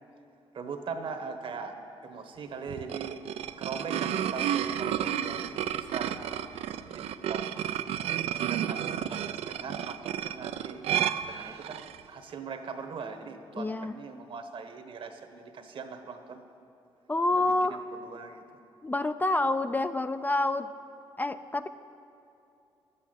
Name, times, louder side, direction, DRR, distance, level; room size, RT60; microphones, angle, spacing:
voice 1, 0.5-1.8 2.0-3.2 3.6-6.2 6.9-7.5 8.3-11.8 12.1-16.4 17.3-18.4, right 5 dB, 60° right, 6 dB, 1.2 m, -41 dB
sound 1, 2.7-12.0, right 10 dB, 85° right, 0.4 m, -31 dB
voice 2, 13.6-13.9 17.1-17.8 18.8-20.7 21.2-21.7, left 2 dB, 15° left, 11 dB, 0.3 m, -27 dB
11.5 x 8.3 x 9.1 m, 2.8 s
cardioid pair, 115°, 10 cm